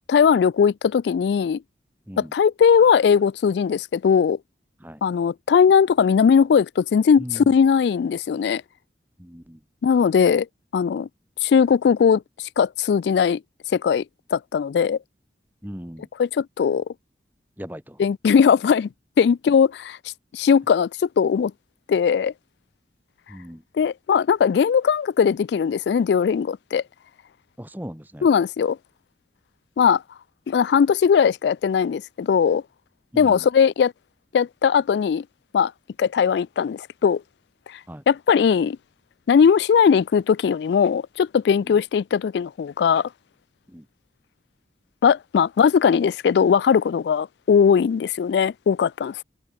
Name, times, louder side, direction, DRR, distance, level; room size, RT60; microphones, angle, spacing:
voice 1, 0.1-1.6 2.2-4.4 5.0-8.6 9.8-10.5 10.7-11.1 11.4-13.4 13.7-14.0 14.3-15.0 16.2-16.8 18.0-18.9 19.2-20.0 20.3-21.5 21.9-22.3 23.8-26.8 28.2-28.8 29.8-30.0 30.5-32.6 33.2-33.9 34.3-35.2 35.5-35.7 36.0-37.2 37.7-37.8 38.1-38.8 39.3-43.1 45.0-49.2, left 6 dB, 75° left, 0.3 m, -19 dB
voice 2, 7.2-7.5 9.2-9.6 15.6-16.1 17.6-18.0 23.3-23.6 27.6-28.3 33.1-33.5 37.9-38.0 41.6-41.8 43.7-43.9, equal, 10° right, 2.3 m, -38 dB
head